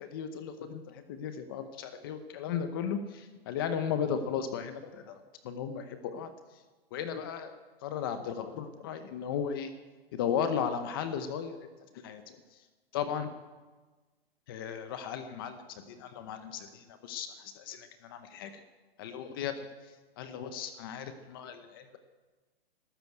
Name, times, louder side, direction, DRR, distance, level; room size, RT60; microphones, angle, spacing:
voice 1, 0.0-5.2 5.4-6.3 6.9-7.6 7.8-9.7 10.1-11.6 12.0-12.4 12.9-13.3 14.5-18.6 19.0-19.7 20.2-22.0, left 7 dB, 25° left, 9 dB, 0.8 m, -35 dB
13.0 x 13.0 x 8.0 m, 1.3 s
hypercardioid pair, 165°, 31 cm